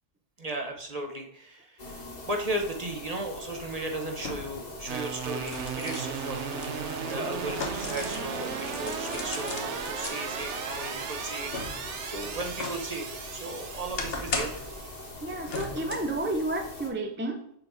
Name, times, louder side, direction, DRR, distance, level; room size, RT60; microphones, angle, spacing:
voice 1, 0.4-6.6 7.0-14.6, right 1 dB, 35° right, 3 dB, 0.9 m, -36 dB
sound 1, 1.8-16.9, left 2 dB, 35° left, 1.4 m, -43 dB
sound 2, 2.8-2.9 4.2-4.7 5.1-8.3 8.6-10.1 10.7-12.9 13.3-14.8 15.5-16.2 16.6-16.7, left 3 dB, 55° left, 1.1 m, -37 dB
sound 3, 4.9-15.1, right 6 dB, 75° right, 1.1 m, -36 dB
voice 2, 15.2-17.5, right 2 dB, 15° right, 3 dB, 0.6 m, -31 dB
6.9 x 5.8 x 3.5 m, 0.70 s
omnidirectional pair, 1.2 m